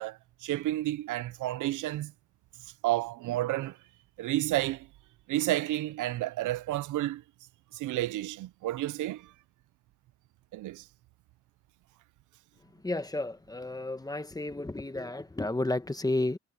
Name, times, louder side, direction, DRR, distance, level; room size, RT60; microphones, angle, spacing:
voice 1, 0.0-2.1 2.8-3.8 4.2-4.9 5.3-7.2 7.7-9.3 10.5-10.8, right 15 dB, 80° right, 0.7 m, -31 dB
voice 2, 12.8-16.4, left 2 dB, 10° left, 1.3 m, -32 dB
cardioid pair, 90°, 30 cm